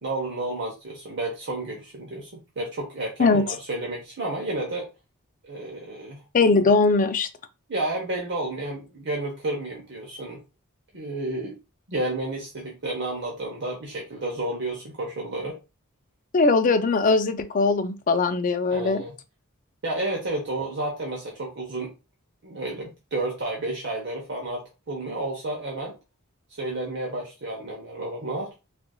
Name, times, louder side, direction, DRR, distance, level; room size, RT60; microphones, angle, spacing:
voice 1, 0.0-2.3 2.6-4.9 5.4-6.2 7.7-10.4 10.9-11.5 11.9-15.6 18.7-19.1 19.8-21.9 22.4-26.0 26.6-28.5, right 2 dB, 55° right, 0.9 m, -31 dB
voice 2, 6.3-7.3 16.3-19.0, left 3 dB, 40° left, 0.4 m, -20 dB
4.5 x 2.5 x 2.2 m
head